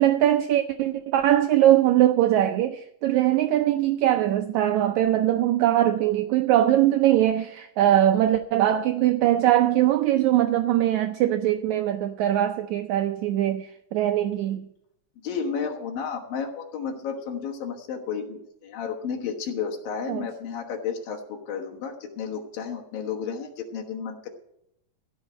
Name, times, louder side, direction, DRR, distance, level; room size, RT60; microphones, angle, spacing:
voice 1, 0.0-14.7 20.1-20.2, right 12 dB, 85° right, 1.6 m, -21 dB
voice 2, 15.2-24.3, left 6 dB, 80° left, 3.1 m, -32 dB
16.0 x 5.6 x 8.8 m
omnidirectional pair, 4.0 m